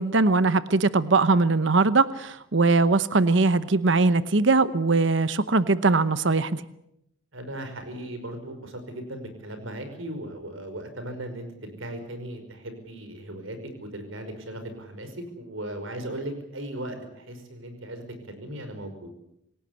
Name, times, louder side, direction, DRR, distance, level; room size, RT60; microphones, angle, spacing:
voice 1, 0.0-6.6, right 3 dB, 65° right, 14 dB, 0.9 m, -21 dB
voice 2, 7.3-19.1, right 1 dB, 85° right, 8 dB, 5.4 m, -37 dB
26.5 x 17.0 x 8.3 m, 0.79 s
head